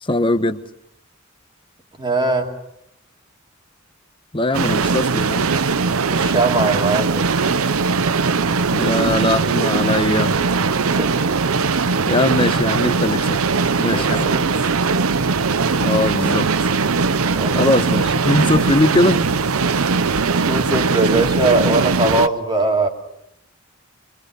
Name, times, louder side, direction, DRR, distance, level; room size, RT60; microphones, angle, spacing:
voice 1, 0.0-0.6 4.3-5.5 8.7-10.4 12.1-13.4 13.8-14.4 15.8-16.5 17.5-19.2, left 2 dB, 25° left, 1.1 m, -20 dB
voice 2, 2.0-2.5 6.1-7.3 10.8-11.1 13.8-14.5 17.3-17.7 20.5-22.9, right 2 dB, 20° right, 2.7 m, -21 dB
sound 1, 4.5-22.3, right 4 dB, 85° right, 0.8 m, -19 dB
25.0 x 23.5 x 6.9 m
head